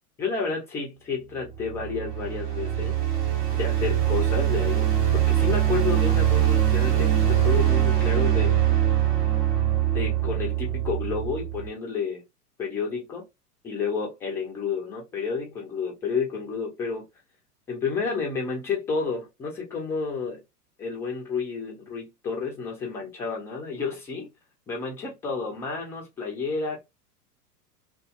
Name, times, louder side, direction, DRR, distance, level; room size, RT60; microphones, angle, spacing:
voice 1, 0.2-2.9 3.5-8.5 9.9-12.2 12.6-13.2 13.6-17.0 17.7-20.4 20.8-24.3 24.7-26.8, left 5 dB, 5° left, 0.4 m, -30 dB
sound 1, 1.5-11.7, right 11 dB, 75° right, 1.4 m, -23 dB
2.7 x 2.7 x 2.3 m
figure-of-eight pair, 95°, 47 cm